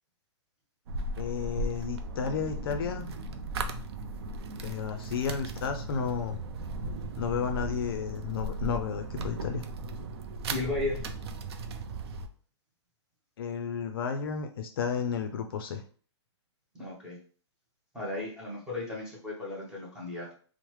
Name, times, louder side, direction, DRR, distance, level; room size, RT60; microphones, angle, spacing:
sound 1, 0.9-12.3, right 2 dB, 60° right, 0.4 m, -36 dB
voice 1, 1.2-3.0 4.6-6.4 7.2-9.6 13.4-15.8, left 6 dB, 50° left, 6 dB, 0.4 m, -32 dB
voice 2, 10.5-11.0 16.8-17.2 17.9-20.3, left 2 dB, 5° right, -5 dB, 0.7 m, -35 dB
3.0 x 2.0 x 3.0 m, 0.42 s
hypercardioid pair, 160°, 15 cm